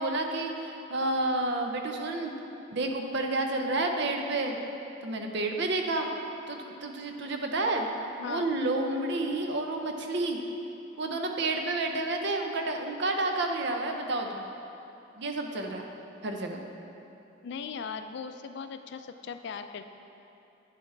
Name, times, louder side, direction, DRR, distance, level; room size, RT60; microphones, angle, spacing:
voice 1, 0.0-2.3 2.7-4.6 5.0-6.1 6.5-7.9 8.2-10.4 11.0-14.5 15.2-15.9 16.2-16.6, right 2 dB, 60° right, 3 dB, 0.7 m, -30 dB
voice 2, 17.4-19.9, left 6 dB, 60° left, 9 dB, 0.4 m, -38 dB
9.2 x 7.1 x 3.3 m, 2.9 s
head